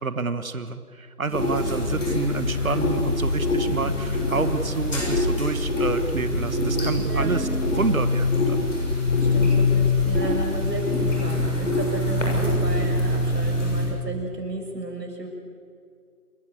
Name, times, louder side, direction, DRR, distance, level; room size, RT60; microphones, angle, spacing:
voice 1, 0.0-7.5 7.7-8.7, right 4 dB, 60° right, 11 dB, 1.4 m, -28 dB
sound 1, 1.3-13.9, left 2 dB, 50° left, 7.3 m, -24 dB
voice 2, 1.3-1.9 3.8-3.9 7.0-7.5 9.2-15.3, right 2 dB, 85° right, 1 dB, 6.6 m, -34 dB
28.0 x 15.0 x 8.3 m, 2.3 s
figure-of-eight pair, 175°, 48 cm